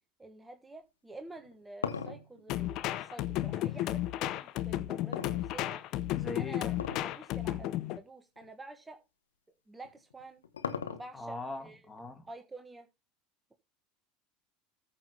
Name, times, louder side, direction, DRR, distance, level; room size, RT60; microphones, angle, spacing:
voice 1, 0.2-5.8 6.3-6.8 7.0-9.0 9.7-10.4 10.9-11.8 12.3-12.9, right 2 dB, 15° right, 1.4 m, -49 dB
sound 1, 1.3-3.7 5.1-6.0 6.7-7.2 7.5-7.6 8.4-8.5 9.8-11.3, left 7 dB, 85° left, 1.0 m, -38 dB
sound 2, 2.5-8.0, left 14 dB, 55° left, 0.8 m, -33 dB
voice 2, 6.1-6.8 11.1-12.3, left 2 dB, 15° left, 2.6 m, -41 dB
14.5 x 6.0 x 3.3 m
hypercardioid pair, 75°, 0 cm